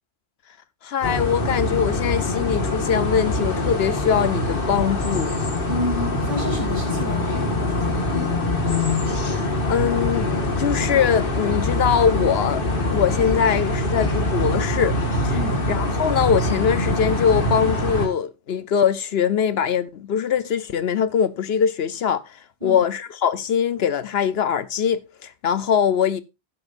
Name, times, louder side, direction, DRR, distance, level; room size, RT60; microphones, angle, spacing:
voice 1, 0.8-5.4 9.3-9.4 9.7-12.6 12.9-15.0 15.2-15.4 15.7-26.2, left 8 dB, 70° left, 0.9 m, -22 dB
sound 1, 1.0-18.1, left 2 dB, 55° left, 1.9 m, -24 dB
voice 2, 5.7-8.4 15.3-15.7 22.6-22.8, left 1 dB, 50° right, 4.2 m, -30 dB
12.5 x 9.8 x 2.6 m
omnidirectional pair, 1.1 m